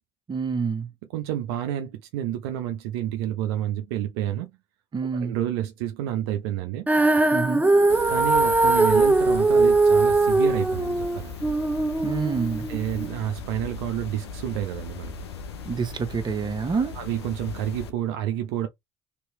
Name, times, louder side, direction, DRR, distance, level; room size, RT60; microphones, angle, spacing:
voice 1, 0.3-0.9 4.9-5.4 7.3-7.6 12.0-12.7 15.6-17.0, right 5 dB, 35° right, 1.0 m, -27 dB
voice 2, 1.1-4.5 5.1-6.9 8.1-11.4 12.7-15.1 16.7-18.7, right 11 dB, 75° right, 0.5 m, -29 dB
Female singing, 6.9-13.1, right 2 dB, 10° right, 0.7 m, -20 dB
sound 1, 7.9-17.9, left 5 dB, 85° left, 0.6 m, -38 dB
3.3 x 3.0 x 3.1 m
hypercardioid pair, 55°, 13 cm